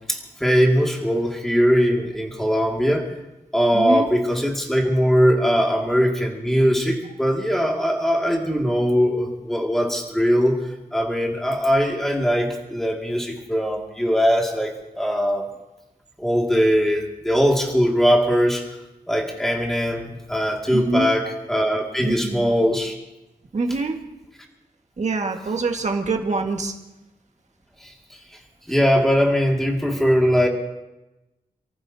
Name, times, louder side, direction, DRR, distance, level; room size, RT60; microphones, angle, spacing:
voice 1, 0.1-3.1 3.5-10.6 10.9-15.5 16.2-18.6 19.1-22.9 28.7-30.5, equal, ahead, 0 dB, 2.2 m, -20 dB
voice 2, 3.7-4.1 20.7-21.1 22.0-22.5 23.5-24.0 25.0-26.7, right 3 dB, 50° right, 3 dB, 1.7 m, -24 dB
28.5 x 14.5 x 2.8 m, 0.99 s
wide cardioid pair, 155°, 16 cm